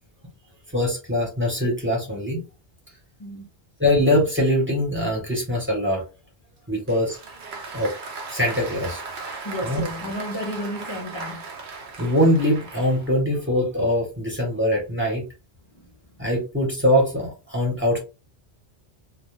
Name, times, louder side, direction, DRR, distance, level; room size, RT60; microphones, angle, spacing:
voice 1, 0.7-2.4 3.8-6.0 6.7-7.2 7.7-7.9 8.3-9.0 9.6-9.8 12.0-15.2 16.2-18.0, left 1 dB, 10° right, 0.8 m, -22 dB
Applause, 6.9-13.2, right 4 dB, 55° right, 0.7 m, -37 dB
voice 2, 9.4-11.5 15.7-15.9, equal, 45° left, 0.4 m, -32 dB
2.3 x 2.0 x 3.1 m
omnidirectional pair, 1.1 m